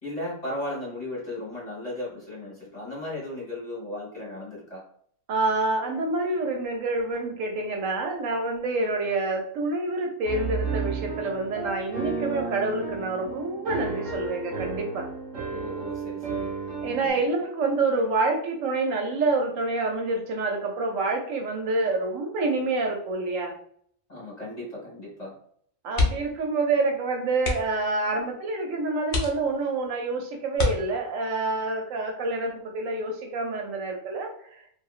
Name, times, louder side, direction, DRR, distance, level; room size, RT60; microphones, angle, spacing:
voice 1, 0.0-4.8 15.5-16.5 16.8-17.2 24.1-25.4, left 1 dB, 35° left, -6 dB, 1.4 m, -36 dB
voice 2, 5.3-15.1 16.8-23.5 25.8-34.6, right 3 dB, 75° right, 2 dB, 1.0 m, -27 dB
Piano, 10.2-17.1, right 4 dB, 40° right, 0.8 m, -33 dB
sound 1, 25.9-26.4 26.7-26.9 27.4-27.9 28.5-28.6 29.1-29.8 30.5-31.3 32.9-33.2 33.5-33.6, left 3 dB, 50° left, 0.7 m, -28 dB
2.7 x 2.5 x 2.4 m, 0.64 s
omnidirectional pair, 1.4 m